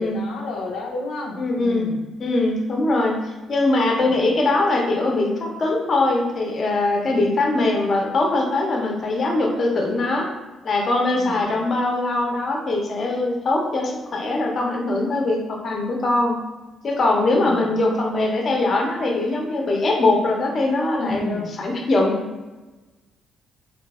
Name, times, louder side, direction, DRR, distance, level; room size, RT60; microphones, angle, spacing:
voice 1, 0.0-2.1 4.0-4.2 7.0-7.3 11.2-11.6 17.3-17.7 21.0-21.6, left 2 dB, 85° left, -2 dB, 0.4 m, -32 dB
voice 2, 1.4-1.9 2.2-3.1 3.5-10.3 10.6-16.4 16.8-22.2, left 2 dB, 45° left, 0 dB, 0.6 m, -21 dB
3.8 x 2.3 x 2.3 m, 1.2 s
cardioid pair, 90°, 0 cm